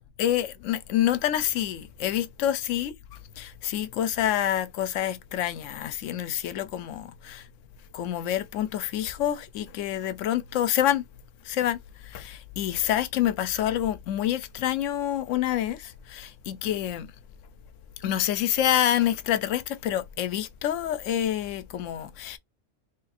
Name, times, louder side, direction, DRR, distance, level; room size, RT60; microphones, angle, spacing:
voice 1, 0.2-2.9 3.4-7.4 7.9-11.0 11.5-17.1 18.0-22.4, left 11 dB, 80° left, 0.9 m, -27 dB
3.3 x 2.5 x 4.1 m
omnidirectional pair, 1.3 m